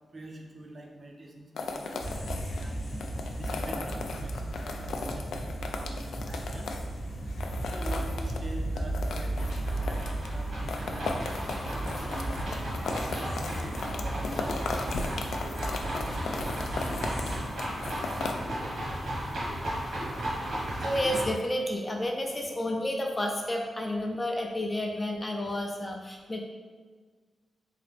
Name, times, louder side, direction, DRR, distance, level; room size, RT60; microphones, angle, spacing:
voice 1, 0.1-2.8 3.3-6.8 7.5-12.4 12.9-14.6, right 1 dB, 35° right, 1 dB, 0.6 m, -45 dB
sound 1, 1.6-18.3, left 3 dB, 85° left, 0.3 m, -37 dB
sound 2, 2.0-17.4, right 1 dB, 55° left, 0.9 m, -35 dB
sound 3, 9.4-21.3, right 1 dB, 65° right, 1.5 m, -35 dB
voice 2, 15.9-19.4 20.0-20.2 20.8-26.4, left 1 dB, 25° left, 1 dB, 0.4 m, -33 dB
3.6 x 2.9 x 3.4 m, 1.4 s
wide cardioid pair, 105°, 0 cm